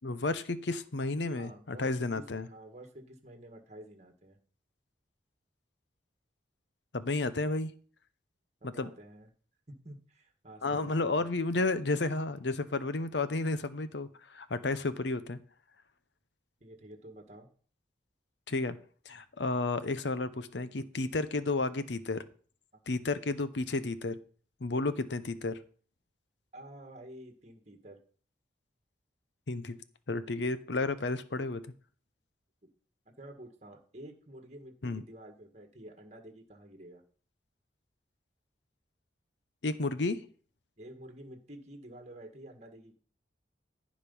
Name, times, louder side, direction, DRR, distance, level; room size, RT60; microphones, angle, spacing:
voice 1, 0.0-2.5 6.9-7.7 8.6-8.9 10.6-15.4 18.5-18.8 19.1-22.2 22.9-24.2 24.6-25.6 29.5-29.8 30.1-31.6 34.8-35.0 39.6-40.3, left 3 dB, 70° left, 0.8 m, -32 dB
voice 2, 1.3-4.4 8.6-9.3 9.7-11.2 16.6-17.5 22.7-22.8 26.5-28.0 33.2-37.0 40.8-42.9, right 1 dB, 40° right, 1.7 m, -50 dB
14.5 x 5.2 x 5.4 m
head